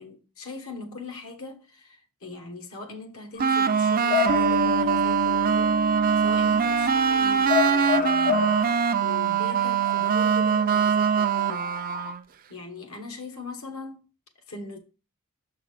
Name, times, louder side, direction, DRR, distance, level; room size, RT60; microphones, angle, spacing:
voice 1, 0.0-5.8 6.2-8.6 9.0-11.7 12.5-14.0 14.5-14.8, left 3 dB, 65° left, 1.3 m, -40 dB
Bark / Motor vehicle (road) / Siren, 3.4-12.1, left 9 dB, 40° left, 0.5 m, -32 dB
sound 1, 3.4-12.2, right 7 dB, 40° right, 0.4 m, -23 dB
Bass guitar, 4.3-7.8, left 3 dB, 70° right, 0.9 m, -30 dB
6.6 x 3.8 x 4.8 m
head